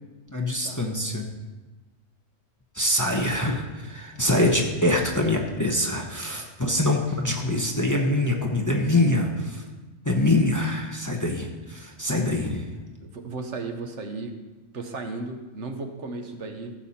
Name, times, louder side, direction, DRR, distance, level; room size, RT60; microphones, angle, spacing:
voice 1, 0.3-1.3 2.7-9.6 10.0-12.6, left 1 dB, 15° left, 1 dB, 0.9 m, -24 dB
voice 2, 13.0-14.3 14.7-16.7, right 3 dB, 65° right, 5 dB, 1.3 m, -35 dB
14.5 x 7.0 x 4.3 m, 1.2 s
omnidirectional pair, 1.3 m